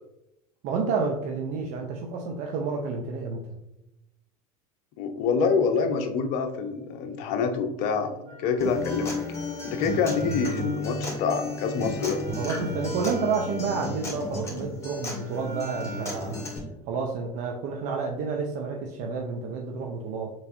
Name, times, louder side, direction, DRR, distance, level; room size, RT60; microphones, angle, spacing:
voice 1, 0.6-3.4 12.4-16.4 16.9-20.3, right 4 dB, 45° right, 1 dB, 0.6 m, -30 dB
voice 2, 5.0-9.1 9.6-12.2, left 5 dB, 45° left, 7 dB, 0.7 m, -26 dB
Wind instrument woodwind instrument, 8.2-16.2, right 2 dB, 80° right, 1.3 m, -45 dB
Acoustic guitar, 8.6-16.6, left 2 dB, 15° left, 1.7 m, -33 dB
6.5 x 3.1 x 2.6 m, 0.89 s
figure-of-eight pair, 75°, 19 cm